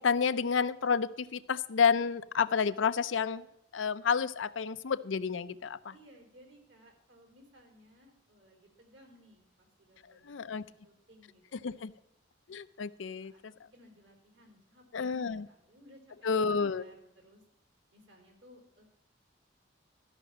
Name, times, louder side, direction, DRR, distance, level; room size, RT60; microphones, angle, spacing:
voice 1, 0.0-3.5 3.7-5.9 10.2-10.6 11.5-11.9 12.5-13.5 14.9-15.5 16.2-16.9, left 6 dB, 85° left, 13 dB, 0.5 m, -30 dB
voice 2, 5.9-11.8 13.0-13.4 13.7-17.4 17.9-18.8, equal, 70° right, 2 dB, 3.6 m, -59 dB
13.0 x 5.8 x 7.2 m, 0.83 s
head